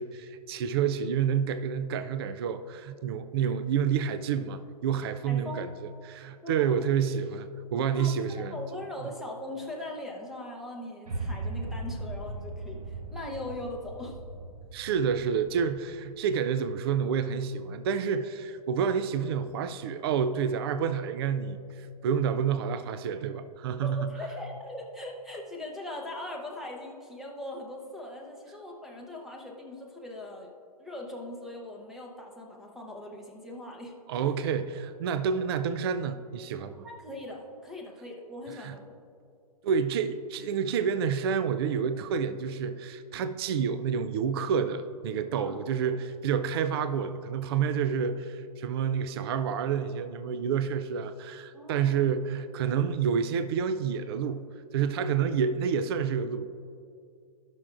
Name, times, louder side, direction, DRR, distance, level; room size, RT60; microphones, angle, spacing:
voice 1, 0.0-5.7 6.0-8.6 14.7-24.1 34.1-36.9 38.6-38.7 39.6-54.4 54.7-56.5, right 7 dB, 40° right, 11 dB, 0.4 m, -29 dB
voice 2, 5.3-5.7 6.4-6.8 7.9-14.2 23.8-30.5 30.8-33.9 36.8-39.0 45.3-45.6 51.5-52.0, left 1 dB, ahead, 0 dB, 0.7 m, -40 dB
sound 1, 11.1-17.2, right 2 dB, 75° right, 1.1 m, -39 dB
17.0 x 6.0 x 2.5 m, 2.4 s
hypercardioid pair, 150°, 21 cm